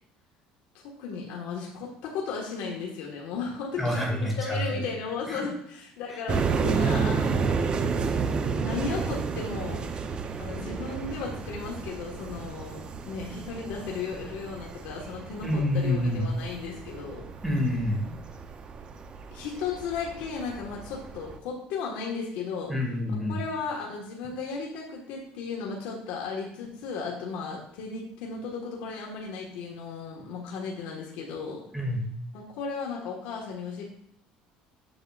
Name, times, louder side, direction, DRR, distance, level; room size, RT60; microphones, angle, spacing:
voice 1, 0.8-7.9 8.3-9.8 10.4-17.2 19.3-22.7 23.1-31.6 32.3-33.8, left 5 dB, 75° left, -2 dB, 1.5 m, -35 dB
voice 2, 3.8-4.8 5.3-5.5 15.4-16.3 17.4-18.1 22.7-23.4 31.7-32.0, left 1 dB, 5° right, -1 dB, 2.2 m, -27 dB
sound 1, 6.3-21.4, right 5 dB, 35° right, 0.6 m, -31 dB
7.7 x 6.7 x 2.4 m, 0.69 s
cardioid pair, 120°, 3 cm